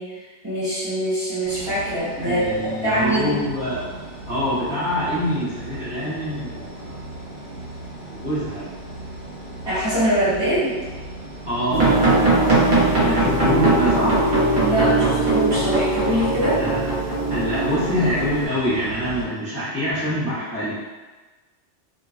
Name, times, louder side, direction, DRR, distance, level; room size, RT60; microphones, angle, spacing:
voice 1, 0.0-3.4 9.6-10.8 14.6-16.6, right 1 dB, 20° right, -12 dB, 1.3 m, -23 dB
sound 1, 1.4-19.2, right 2 dB, 50° left, 1.1 m, -37 dB
voice 2, 2.2-3.9 4.3-7.0 8.1-8.7 11.4-14.2 16.2-16.8 17.3-20.8, equal, 15° left, -14 dB, 0.6 m, -25 dB
sound 2, 11.7-18.4, right 2 dB, 45° right, 0.8 m, -20 dB
2.5 x 2.3 x 2.4 m, 1.3 s
omnidirectional pair, 1.2 m